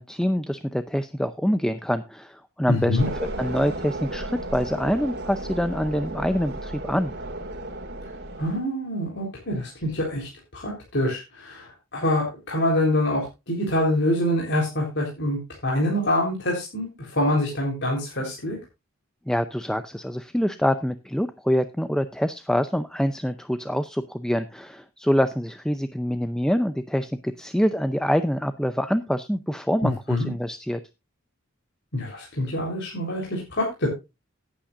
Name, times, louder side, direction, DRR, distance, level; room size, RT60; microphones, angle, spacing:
voice 1, 0.0-3.0 3.4-7.1 19.3-30.8, equal, 5° left, 10 dB, 0.5 m, -25 dB
voice 2, 2.7-3.1 8.4-18.6 29.8-30.3 31.9-33.9, left 1 dB, 55° left, -2 dB, 3.8 m, -25 dB
sound 1, 3.0-8.6, right 1 dB, 50° right, 2.2 m, -34 dB
17.5 x 8.7 x 2.5 m, 0.25 s
head